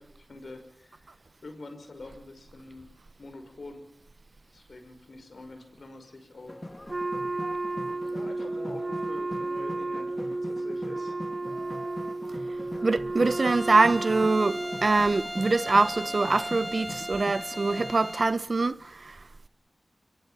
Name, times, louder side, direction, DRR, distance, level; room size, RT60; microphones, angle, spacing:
voice 1, 0.0-2.9 3.2-3.8 4.5-6.6 7.6-7.8 8.1-11.2, left 2 dB, 70° left, 5.6 m, -46 dB
sound 1, 6.5-18.1, left 1 dB, 25° left, 2.4 m, -42 dB
Wind instrument woodwind instrument, 6.9-14.8, right 2 dB, 45° right, 4.2 m, -33 dB
voice 2, 12.8-18.8 19.0-19.1, right 3 dB, 60° right, 1.0 m, -24 dB
Bowed string instrument, 13.2-18.4, equal, ahead, 2.3 m, -38 dB
22.5 x 22.0 x 8.7 m
wide cardioid pair, 50°, 0 cm